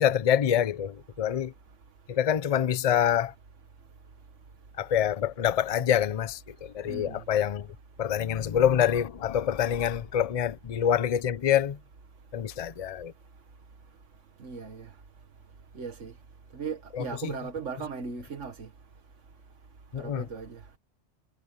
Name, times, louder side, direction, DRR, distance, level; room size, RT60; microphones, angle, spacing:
voice 1, 0.0-1.5 2.1-3.3 4.8-7.7 8.0-11.8 12.3-13.1 16.9-17.3 19.9-20.2, left 9 dB, 40° left, 0.6 m, -26 dB
voice 2, 6.9-7.2 14.4-14.9 15.8-16.1 16.5-18.7 20.0-20.6, right 5 dB, 85° right, 1.8 m, -37 dB
omnidirectional pair, 1.2 m